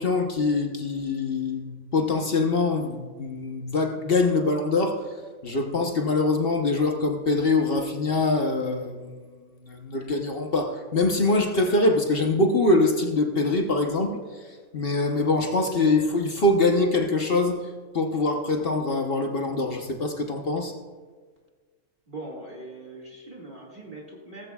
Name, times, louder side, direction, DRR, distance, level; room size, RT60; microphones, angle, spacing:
voice 1, 0.0-5.0 5.4-9.3 9.6-14.2 14.7-17.6 17.9-20.7, left 2 dB, 50° left, 3 dB, 1.1 m, -24 dB
voice 2, 22.1-24.5, right 2 dB, 40° right, -3 dB, 2.2 m, -41 dB
17.5 x 15.5 x 2.3 m, 1.5 s
omnidirectional pair, 1.4 m